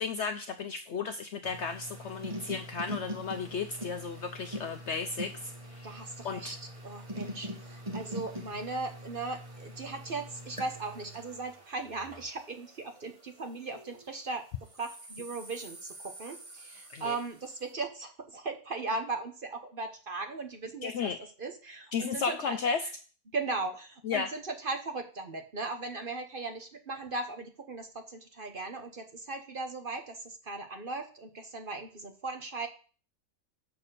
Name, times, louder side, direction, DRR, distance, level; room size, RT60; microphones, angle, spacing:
voice 1, 0.0-5.9 6.2-6.5 16.9-17.2 20.8-21.2 21.9-22.9 24.0-24.3, left 5 dB, 65° left, 7 dB, 0.7 m, -34 dB
sound 1, 1.4-14.1 14.6-17.5, equal, 25° right, 1.2 m, -44 dB
voice 2, 5.8-6.6 6.8-14.4 14.7-22.6 23.3-32.7, right 3 dB, 40° right, 5 dB, 0.9 m, -38 dB
6.8 x 4.2 x 6.6 m, 0.39 s
omnidirectional pair, 1.6 m